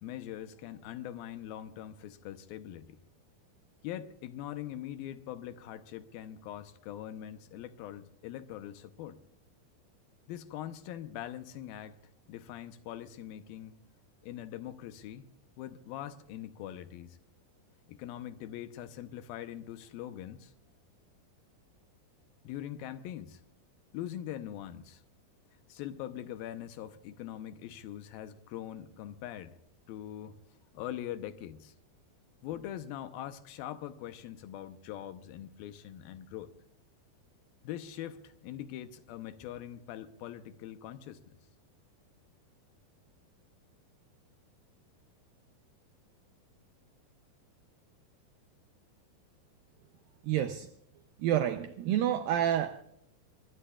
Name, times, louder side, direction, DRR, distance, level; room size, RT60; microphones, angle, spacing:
voice 1, 0.0-3.0 3.8-9.2 10.3-12.0 12.3-13.8 14.2-15.3 15.6-17.2 17.9-20.5 22.4-23.4 23.9-25.0 25.7-29.6 29.9-30.4 30.7-31.7 32.4-36.5 37.6-41.4, left 11 dB, 75° left, 2.5 m, -42 dB
voice 2, 50.2-50.7 51.2-52.8, right 11 dB, 80° right, 2.2 m, -29 dB
23.5 x 20.0 x 2.4 m
omnidirectional pair, 4.6 m